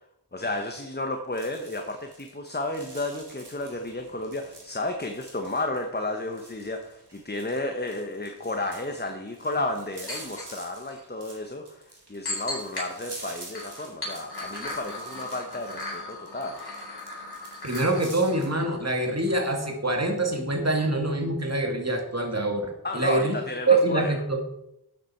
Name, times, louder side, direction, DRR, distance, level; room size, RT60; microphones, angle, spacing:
voice 1, 0.3-16.6 22.8-24.1, left 2 dB, 25° left, 5 dB, 1.1 m, -32 dB
sound 1, 1.3-18.5, right 2 dB, 90° right, 3.2 m, -48 dB
sound 2, 10.1-10.5 10.9-11.0 12.3-12.9 13.3-19.3 19.6-19.7, left 2 dB, 70° left, 4.1 m, -37 dB
voice 2, 17.6-22.7 22.9-23.4 23.7-24.4, right 2 dB, 40° right, 3 dB, 2.3 m, -25 dB
12.5 x 8.2 x 4.5 m, 0.83 s
wide cardioid pair, 55°, 40 cm